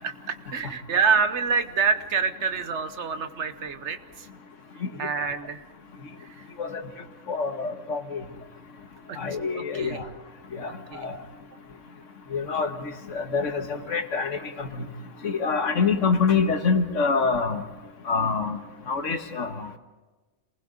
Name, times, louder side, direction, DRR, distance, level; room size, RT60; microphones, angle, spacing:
voice 1, 0.0-4.3 5.0-5.6 6.2-6.5 9.1-9.2 9.5-10.0 10.9-11.1, right 5 dB, 65° right, 10 dB, 1.3 m, -27 dB
voice 2, 7.3-8.2 9.2-10.0 10.5-11.2 12.3-14.8 15.2-17.6 18.1-18.6 18.9-19.8, left 5 dB, 75° left, 7 dB, 1.7 m, -26 dB
27.0 x 19.5 x 5.1 m, 1.2 s
omnidirectional pair, 1.3 m